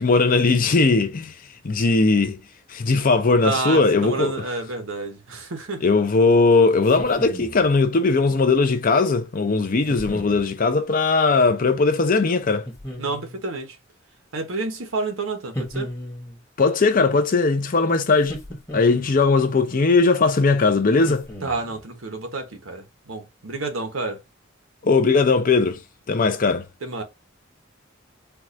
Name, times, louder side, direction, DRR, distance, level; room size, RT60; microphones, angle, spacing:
voice 1, 0.0-1.3 1.6-2.4 2.7-4.3 5.8-12.6 16.6-18.4 18.7-21.3 24.8-25.8 26.1-26.6, left 3 dB, 45° left, 0.6 m, -19 dB
voice 2, 3.4-5.8 13.0-13.8 14.3-15.9 21.4-24.2 26.8-27.0, right 3 dB, 80° right, 1.0 m, -29 dB
sound 1, 6.8-7.7 9.9-10.5 12.7-13.4 15.5-16.4 18.2-19.2 21.0-21.8, equal, 15° left, 1.0 m, -35 dB
4.6 x 2.4 x 2.5 m
head